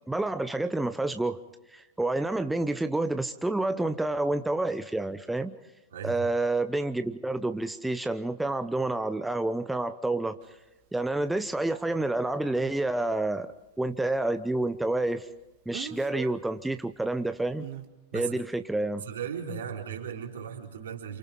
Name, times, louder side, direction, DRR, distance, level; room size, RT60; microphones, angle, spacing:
voice 1, 0.1-1.4 1.7-5.6 6.0-10.4 10.9-15.3 15.7-17.7 18.1-19.0, right 2 dB, 5° right, 9 dB, 0.8 m, -29 dB
Speech, 10.4-10.5 15.7-16.4 17.6-17.8, right 11 dB, 50° right, 2.0 m, -39 dB
voice 2, 19.0-21.2, right 7 dB, 65° right, 0 dB, 4.3 m, -36 dB
29.0 x 28.0 x 3.8 m, 1.0 s
figure-of-eight pair, 90°, 0 cm